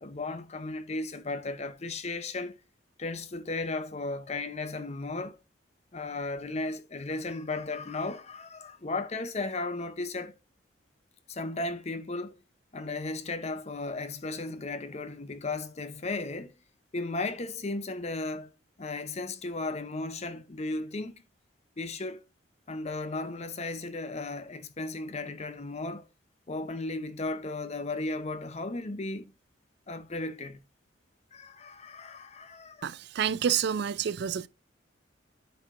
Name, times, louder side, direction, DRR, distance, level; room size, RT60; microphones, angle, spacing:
voice 1, 0.0-2.6 3.0-5.4 5.9-10.3 11.3-12.4 12.7-16.5 16.9-18.5 18.8-21.1 21.8-22.2 22.7-26.1 26.5-29.3 29.9-30.6 31.3-32.9, left 2 dB, 35° left, 0.6 m, -35 dB
voice 2, 32.8-34.5, right 8 dB, 60° right, 0.4 m, -28 dB
9.3 x 4.6 x 2.5 m
head